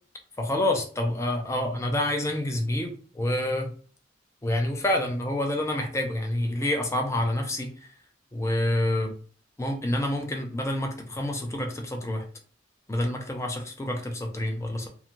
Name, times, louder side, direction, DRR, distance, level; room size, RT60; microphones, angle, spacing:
voice 1, 0.4-3.7 4.4-7.7 8.3-9.1 9.6-12.2 12.9-14.9, left 1 dB, 15° left, 3 dB, 0.5 m, -27 dB
2.6 x 2.3 x 2.9 m, 0.41 s
head